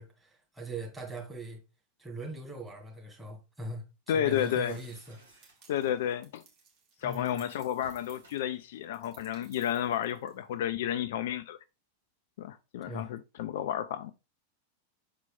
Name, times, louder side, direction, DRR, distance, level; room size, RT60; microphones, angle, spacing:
voice 1, 0.0-1.6 2.0-5.5 7.0-7.4 12.9-13.1, right 2 dB, 10° right, 2.2 m, -41 dB
voice 2, 4.1-4.8 5.7-6.4 7.0-11.6 12.4-14.1, left 10 dB, 55° left, 0.4 m, -31 dB
sound 1, 4.3-6.0 7.7-8.9, right 2 dB, 70° right, 2.1 m, -58 dB
sound 2, 5.4-10.6, right 5 dB, 40° right, 1.6 m, -60 dB
6.7 x 4.4 x 3.4 m
figure-of-eight pair, 90°, 0 cm